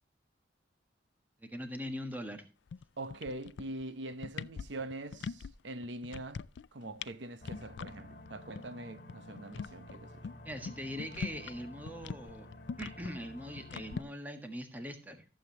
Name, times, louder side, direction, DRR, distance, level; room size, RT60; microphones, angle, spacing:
voice 1, 1.4-2.4 10.4-12.5 12.8-15.2, equal, 10° right, 1.5 m, -41 dB
sound 1, 2.7-2.8 3.1-3.8 4.1-5.5 5.8-6.7 7.0-7.1 7.4-7.9 8.3-8.4 8.5-8.6 9.0-11.6 11.9-14.0, left 5 dB, 70° left, 0.4 m, -41 dB
voice 2, 3.0-6.4 6.7-10.2, right 2 dB, 75° right, 0.9 m, -43 dB
sound 2, 7.4-14.0, left 1 dB, 50° left, 2.6 m, -51 dB
14.5 x 7.6 x 2.9 m
head